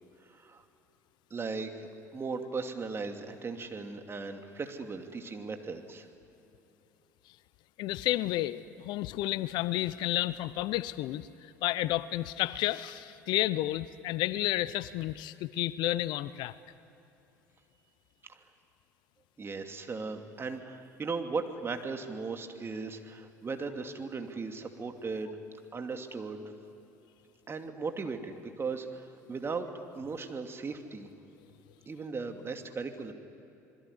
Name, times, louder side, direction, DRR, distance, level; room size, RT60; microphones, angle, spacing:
voice 1, 0.3-0.6 1.3-6.1 18.3-18.4 19.4-25.4 25.7-26.4 27.5-29.7 29.9-31.1 31.9-33.1, right 4 dB, 25° right, 5 dB, 2.7 m, -37 dB
voice 2, 7.8-16.5, left 15 dB, 55° left, 17 dB, 0.7 m, -31 dB
26.5 x 21.5 x 9.8 m, 3.0 s
hypercardioid pair, 65°, 9 cm